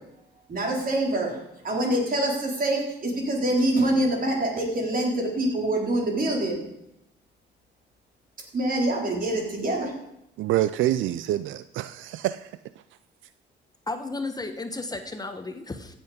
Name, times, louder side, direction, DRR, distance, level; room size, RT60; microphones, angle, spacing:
voice 1, 0.5-1.4 1.6-6.6 8.5-9.9, right 1 dB, 45° right, 0 dB, 4.2 m, -25 dB
voice 2, 10.4-12.5, right 13 dB, 80° right, 14 dB, 0.5 m, -26 dB
voice 3, 13.9-15.9, left 3 dB, 20° left, 7 dB, 1.2 m, -33 dB
15.5 x 8.0 x 5.1 m, 0.85 s
cardioid pair, 90°, 20 cm